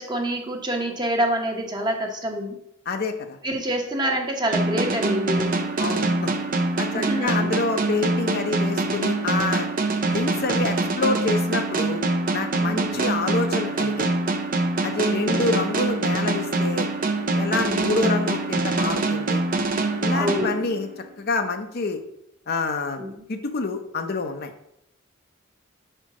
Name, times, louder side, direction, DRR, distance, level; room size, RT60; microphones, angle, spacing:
voice 1, 0.0-2.6 3.4-5.6 6.9-7.5 12.6-13.1 14.9-15.4 17.7-18.2 20.1-20.5 23.0-23.2, equal, 20° right, 2 dB, 0.9 m, -27 dB
voice 2, 2.9-3.4 5.8-6.3 6.8-9.7 10.1-12.0 12.3-14.1 14.8-16.9 17.3-19.4 20.0-20.9 21.2-22.0 22.5-23.0 23.3-24.5, left 3 dB, 50° left, 6 dB, 0.6 m, -27 dB
sound 1, 4.5-21.1, right 2 dB, 45° right, 0.6 m, -24 dB
5.1 x 4.4 x 5.9 m, 0.77 s
head